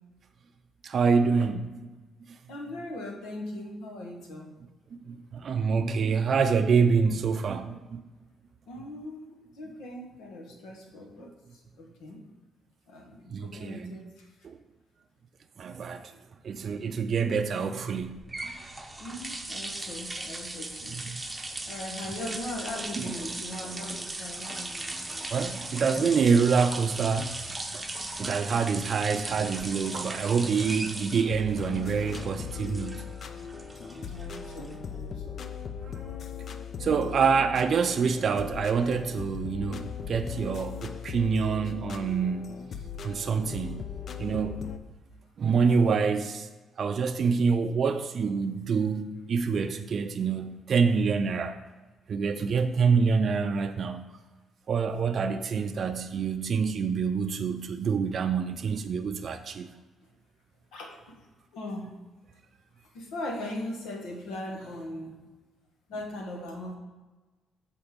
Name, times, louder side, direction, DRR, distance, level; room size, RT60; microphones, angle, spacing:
voice 1, 0.8-1.9 5.1-8.0 13.3-14.0 14.4-14.6 15.6-16.1 16.4-18.2 20.9-21.2 23.0-23.1 25.3-27.4 27.7-27.8 28.2-33.1 36.8-42.6 43.0-43.9 44.2-44.6 45.4-46.5 46.8-51.6 52.1-54.1 54.7-59.7, right 5 dB, 55° right, 0.4 m, -26 dB
voice 2, 2.5-4.5 8.7-9.2 9.5-12.2 12.9-14.3 19.0-21.0 21.6-25.2 33.8-35.4 37.0-37.4 60.7-61.3 61.5-61.9 62.9-65.2 65.9-66.7, left 1 dB, 90° left, 1.3 m, -39 dB
sound 1, 18.0-35.0, right 2 dB, 15° right, 0.7 m, -38 dB
sound 2, 31.2-44.8, left 7 dB, 55° left, 0.5 m, -39 dB
7.2 x 4.4 x 5.1 m
cardioid pair, 90°, 0 cm